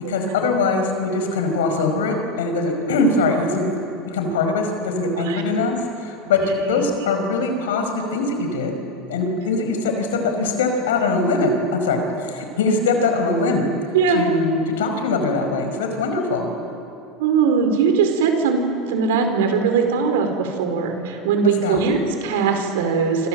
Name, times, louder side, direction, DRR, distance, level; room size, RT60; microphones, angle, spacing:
voice 1, 0.1-3.6 4.0-10.1 10.4-13.7 14.1-16.5 21.6-21.8, left 3 dB, 90° left, 5 dB, 5.2 m, -22 dB
voice 2, 17.2-23.3, right 5 dB, 85° right, 5 dB, 4.7 m, -20 dB
27.5 x 27.0 x 7.8 m, 2.7 s
supercardioid pair, 100°, 0 cm